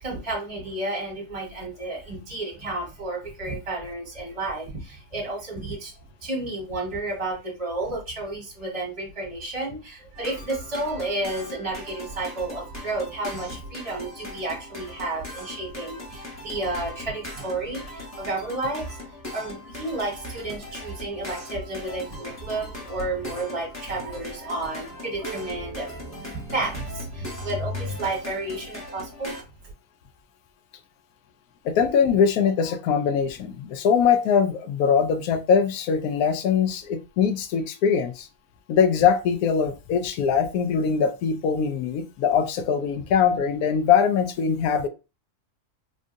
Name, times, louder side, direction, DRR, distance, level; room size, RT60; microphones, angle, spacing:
voice 1, 0.0-5.9 6.2-29.4 29.6-29.7, right 2 dB, 25° right, 1.3 m, -31 dB
sound 1, 10.1-29.4, left 1 dB, 15° left, 0.6 m, -40 dB
voice 2, 31.6-38.3 38.7-44.9, left 7 dB, 75° left, 1.0 m, -22 dB
3.6 x 2.5 x 2.5 m
omnidirectional pair, 1.6 m